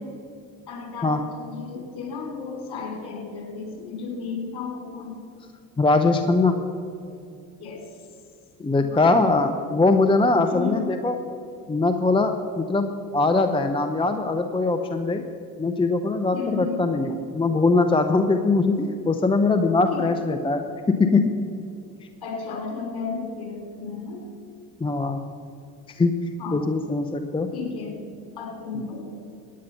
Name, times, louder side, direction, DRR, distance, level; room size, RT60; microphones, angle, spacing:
voice 1, 0.7-5.2 7.6-7.8 8.7-9.0 10.5-10.9 16.3-16.8 19.9-20.0 22.2-24.2 26.4-26.7 27.5-27.9 28.4-29.2, left 5 dB, 50° left, 2 dB, 3.9 m, -33 dB
voice 2, 5.8-6.5 8.6-11.2 11.7-15.2 15.6-21.3 24.8-25.2 25.9-26.1 26.5-27.5 28.7-28.8, left 3 dB, 10° left, 6 dB, 0.7 m, -21 dB
15.0 x 9.7 x 5.7 m, 2.6 s
hypercardioid pair, 70°, 48 cm